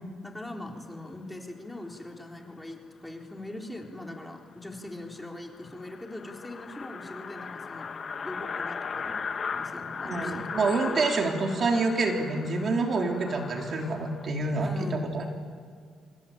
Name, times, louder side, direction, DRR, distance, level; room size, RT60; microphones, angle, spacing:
voice 1, 0.2-7.9 8.2-9.1 9.5-10.4 14.5-15.2, left 1 dB, 10° left, 1 dB, 3.8 m, -41 dB
sound 1, 4.3-4.4 4.8-4.9 5.2-5.3 5.5-14.3, left 5 dB, 45° left, 1.3 m, -37 dB
voice 2, 10.0-15.3, right 3 dB, 50° right, 2 dB, 3.5 m, -27 dB
26.0 x 23.0 x 8.8 m, 2.2 s
cardioid pair, 90°, 0 cm